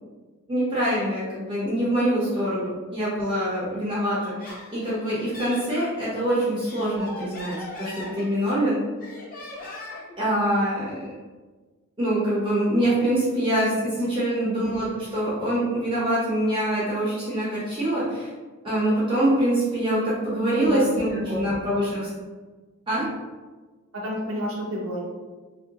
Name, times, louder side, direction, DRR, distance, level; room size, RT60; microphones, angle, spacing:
voice 1, 0.5-8.8 10.2-10.9 12.0-18.3 18.6-22.1 22.9-23.1, right 1 dB, 25° right, -9 dB, 0.8 m, -24 dB
Laughter, 4.2-5.9 6.4-8.6 9.0-10.2, left 2 dB, 45° left, 0.7 m, -40 dB
voice 2, 23.9-25.0, equal, 65° right, -4 dB, 0.6 m, -30 dB
3.0 x 2.7 x 2.9 m, 1.3 s
head